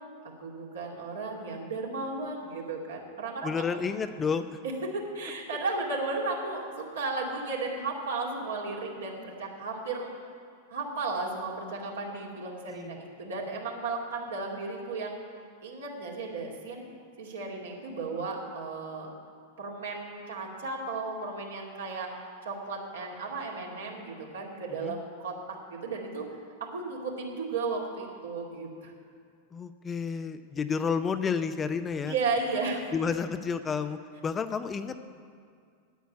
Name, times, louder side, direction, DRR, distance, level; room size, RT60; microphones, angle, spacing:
voice 1, 0.4-3.5 4.9-10.1 10.7-15.2 15.6-16.9 17.2-19.1 19.6-22.1 22.4-26.3 26.6-28.9 32.0-32.9, right 3 dB, 65° right, -1 dB, 2.4 m, -34 dB
voice 2, 3.4-4.6 12.7-13.0 24.8-25.0 29.5-32.1 32.9-35.0, left 6 dB, 20° left, 10 dB, 0.5 m, -31 dB
9.3 x 9.2 x 9.0 m, 2.2 s
figure-of-eight pair, 90°, 0 cm